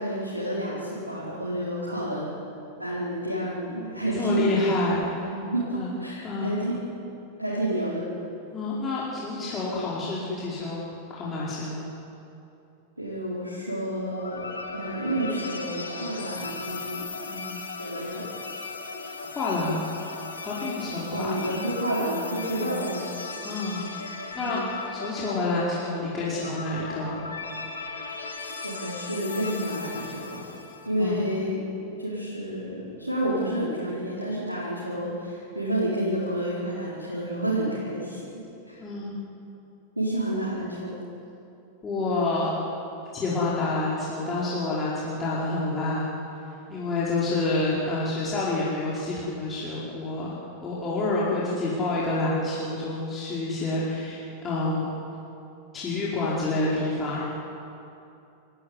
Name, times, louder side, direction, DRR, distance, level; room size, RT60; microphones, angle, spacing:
voice 1, 0.0-2.3 2.8-4.5 5.3-6.8 7.4-8.1 13.0-17.0 17.7-18.2 21.1-23.1 24.4-24.6 28.6-30.4 30.8-31.7 32.0-38.8 39.9-41.1, right 1 dB, 85° right, -8 dB, 4.7 m, -30 dB
voice 2, 4.1-5.3 5.7-5.9 6.2-6.5 8.5-10.8 11.1-11.8 17.3-17.6 19.3-19.9 20.4-21.6 22.6-22.8 23.4-24.0 24.3-24.6 24.9-27.2 31.0-31.3 38.8-39.2 41.8-42.7 43.1-46.1 46.7-50.3 50.6-54.9 55.7-57.2, left 2 dB, 20° left, -7 dB, 5.0 m, -28 dB
sound 1, 14.0-30.9, left 4 dB, 75° left, 3.1 m, -37 dB
28.5 x 14.5 x 9.8 m, 2.8 s
figure-of-eight pair, 90°, 0 cm